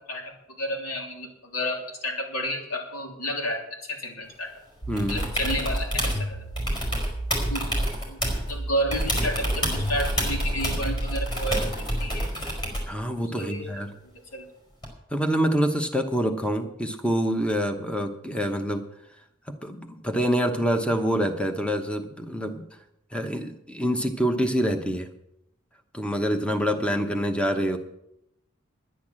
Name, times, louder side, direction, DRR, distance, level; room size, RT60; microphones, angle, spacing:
voice 1, 0.1-4.5 5.1-6.5 7.5-8.2 8.5-11.6 12.0-12.3 13.4-13.8 14.1-14.5, equal, 85° left, -1 dB, 3.3 m, -31 dB
sound 1, 4.8-7.8 8.2-11.3, right 1 dB, 45° left, 2.3 m, -32 dB
voice 2, 4.9-5.2 12.9-13.9 15.1-18.8 19.6-22.6 23.1-25.1 25.9-27.8, equal, 5° left, 6 dB, 1.0 m, -26 dB
sound 2, 5.0-6.2 6.6-8.5 8.9-12.9 14.8-14.9, equal, 20° left, 4.6 m, -28 dB
11.0 x 10.5 x 7.5 m, 0.80 s
head